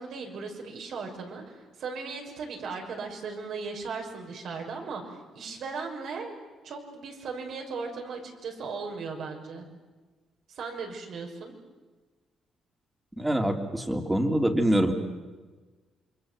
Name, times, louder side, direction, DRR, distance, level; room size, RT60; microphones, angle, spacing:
voice 1, 0.0-6.3 6.6-9.6 10.5-11.5, right 4 dB, 70° right, 1 dB, 6.0 m, -37 dB
voice 2, 13.2-14.9, right 1 dB, 10° right, 4 dB, 3.1 m, -25 dB
28.0 x 23.5 x 7.8 m, 1.3 s
cardioid pair, 90°, 0 cm